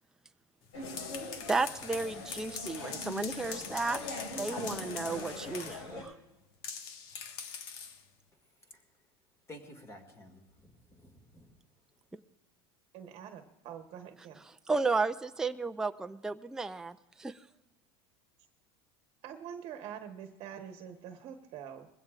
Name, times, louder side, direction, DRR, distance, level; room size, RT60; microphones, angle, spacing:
sound 1, 0.6-5.9 6.6-8.0, left 6 dB, 70° left, 1.5 m, -43 dB
sound 2, 0.7-6.0, left 2 dB, 85° left, 5.5 m, -42 dB
voice 1, 1.5-4.0 4.4-6.2 14.7-17.4, right 3 dB, 5° right, 8 dB, 0.4 m, -33 dB
voice 2, 9.5-11.5, left 1 dB, 20° left, 6 dB, 2.0 m, -52 dB
voice 3, 12.9-14.4 19.2-21.9, right 8 dB, 45° right, 6 dB, 1.1 m, -45 dB
21.5 x 16.0 x 2.4 m, 1.0 s
supercardioid pair, 135°, 14 cm